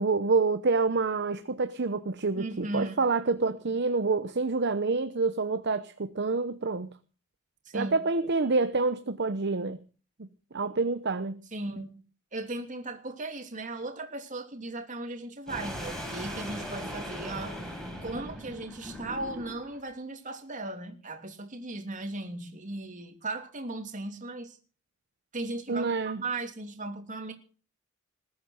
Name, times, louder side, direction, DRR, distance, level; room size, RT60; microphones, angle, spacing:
voice 1, 0.0-6.9 7.7-9.8 10.5-11.4 25.7-26.2, right 3 dB, 55° right, 0.9 m, -27 dB
voice 2, 2.4-3.0 7.6-8.0 11.5-12.0 12.3-17.6 18.0-24.6 25.3-27.3, right 2 dB, 40° right, 3.0 m, -37 dB
sound 1, 15.5-19.8, equal, 5° left, 6.0 m, -39 dB
20.0 x 9.3 x 6.6 m
head